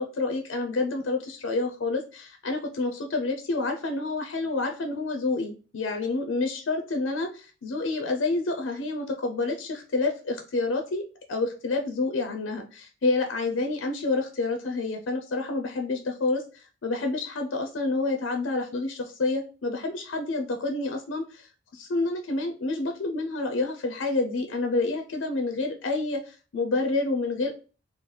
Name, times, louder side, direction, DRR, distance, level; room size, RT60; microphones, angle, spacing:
voice 1, 0.0-27.6, left 3 dB, 85° left, 4 dB, 0.5 m, -28 dB
3.2 x 2.0 x 3.8 m, 0.36 s
head